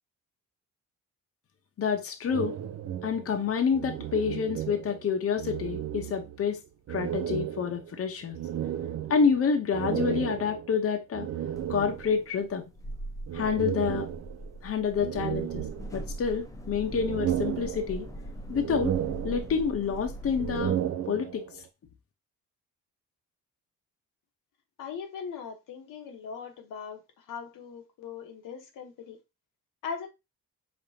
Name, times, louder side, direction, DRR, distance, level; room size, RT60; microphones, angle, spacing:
voice 1, 1.8-2.6 3.0-6.6 6.9-8.4 9.1-11.3 11.7-12.6 13.3-14.1 14.6-15.6 15.9-18.1 18.5-19.0 19.2-20.8 21.1-21.6, left 6 dB, 45° left, 0.9 m, -28 dB
sound 1, 2.3-5.1 5.4-6.5 6.9-12.3 13.3-14.6 15.0-16.3 16.7-18.2 18.5-19.8 20.3-21.6, right 10 dB, 60° right, 0.5 m, -34 dB
sound 2, 11.5-20.7, right 1 dB, 10° left, 0.8 m, -41 dB
voice 2, 24.8-29.2 29.8-30.1, left 6 dB, 75° left, 1.1 m, -40 dB
5.1 x 3.7 x 2.7 m
cardioid pair, 110°, 32 cm